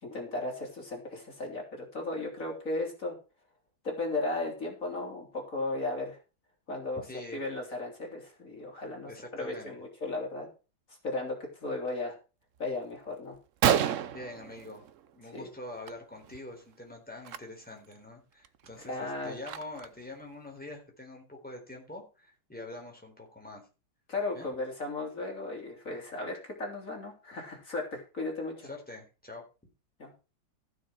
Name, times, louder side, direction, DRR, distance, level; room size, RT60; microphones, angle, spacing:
voice 1, 0.0-3.2 3.8-6.2 6.7-10.5 10.9-12.2 12.6-13.4 15.3-15.5 18.8-19.4 24.1-28.7 30.0-30.1, left 2 dB, 45° left, 1 dB, 3.5 m, -35 dB
voice 2, 7.1-7.4 9.0-9.8 14.1-14.8 15.1-23.6 24.3-24.5 28.6-29.4, left 2 dB, 5° left, 0 dB, 4.0 m, -45 dB
Gunshot gunfire, 12.9-13.0 13.3-13.4 13.6-15.2 15.6-16.4 17.2-17.4 17.9-18.0 18.4-20.0, right 9 dB, 60° right, 0.8 m, -30 dB
15.0 x 6.9 x 4.6 m, 0.32 s
omnidirectional pair, 2.0 m